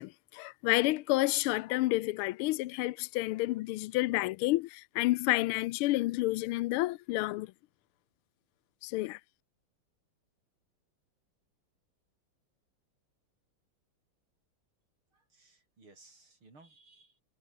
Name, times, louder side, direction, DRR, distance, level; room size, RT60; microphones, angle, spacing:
voice 1, 0.0-7.5 8.8-9.2, left 19 dB, 80° left, 1.4 m, -30 dB
voice 2, 15.1-17.2, right 3 dB, 70° right, 7.4 m, -60 dB
omnidirectional pair, 2.4 m